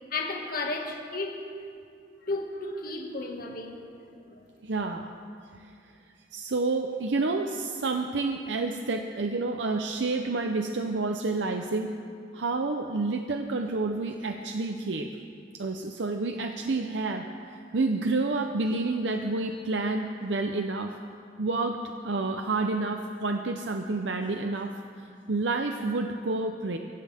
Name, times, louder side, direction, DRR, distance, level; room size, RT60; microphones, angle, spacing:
voice 1, 0.1-1.5 2.2-3.8 4.3-4.4, left 2 dB, 55° left, 1 dB, 2.0 m, -33 dB
voice 2, 4.6-5.1 5.5-5.7 6.3-12.0 12.3-15.1 15.5-21.0 21.4-26.8, right 3 dB, 75° right, 5 dB, 0.7 m, -29 dB
23.5 x 15.5 x 3.6 m, 2.4 s
head